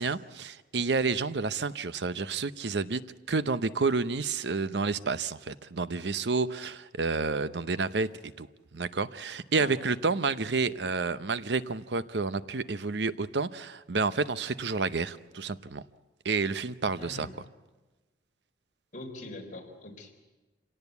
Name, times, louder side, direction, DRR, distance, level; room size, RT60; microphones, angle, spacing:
voice 1, 0.0-3.0 3.3-8.1 8.4-8.5 8.7-15.8 16.2-17.3, right 4 dB, 70° right, 14 dB, 0.8 m, -30 dB
voice 2, 17.0-17.4 18.9-20.1, left 2 dB, 50° left, 1 dB, 4.2 m, -42 dB
26.5 x 18.0 x 8.3 m, 1.2 s
head